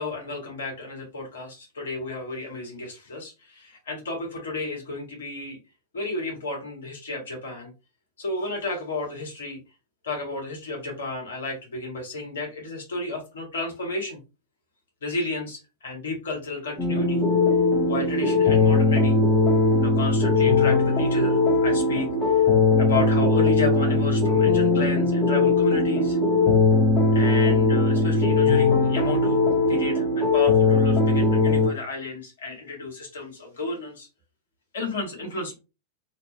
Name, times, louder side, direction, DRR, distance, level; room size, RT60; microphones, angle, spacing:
voice 1, 0.0-5.6 5.9-7.7 8.2-9.6 10.0-14.2 15.0-17.2 17.9-19.2 19.8-22.4 22.8-26.2 27.1-29.4 29.7-34.1 34.7-35.6, left 2 dB, 65° left, 0 dB, 1.1 m, -32 dB
sound 1, 16.8-31.7, left 3 dB, 10° left, 0.9 m, -20 dB
2.8 x 2.4 x 2.2 m, 0.29 s
figure-of-eight pair, 90°, 0 cm